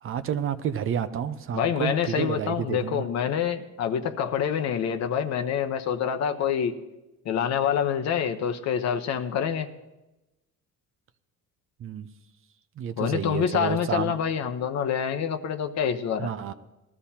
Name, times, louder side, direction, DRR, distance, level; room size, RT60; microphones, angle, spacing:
voice 1, 0.0-3.1 11.8-12.1 12.8-14.1 16.2-16.5, right 8 dB, 40° right, 11 dB, 0.6 m, -30 dB
voice 2, 1.5-6.8 7.2-9.7 13.0-16.3, left 8 dB, 55° left, 7 dB, 0.9 m, -26 dB
19.5 x 13.5 x 2.9 m, 1.0 s
cardioid pair, 130°, 32 cm